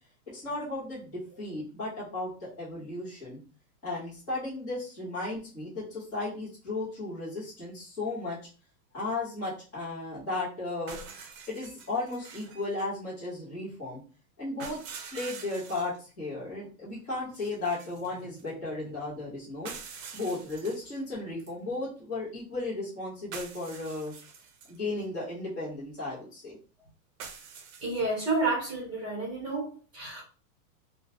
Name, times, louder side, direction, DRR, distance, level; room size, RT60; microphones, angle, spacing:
voice 1, 0.3-3.4 3.8-8.4 8.9-11.0 11.5-14.0 14.4-14.8 15.1-24.1 24.7-26.6, left 2 dB, 10° left, 0.4 m, -35 dB
sound 1, 10.9-12.7 14.6-16.0 17.3-18.5 19.7-21.0 21.4-21.5 23.3-24.8 27.2-28.3, right 6 dB, 60° right, 0.6 m, -45 dB
voice 2, 27.8-30.2, right 3 dB, 25° right, 0.8 m, -30 dB
2.5 x 2.0 x 2.5 m
supercardioid pair, 170°, 45 cm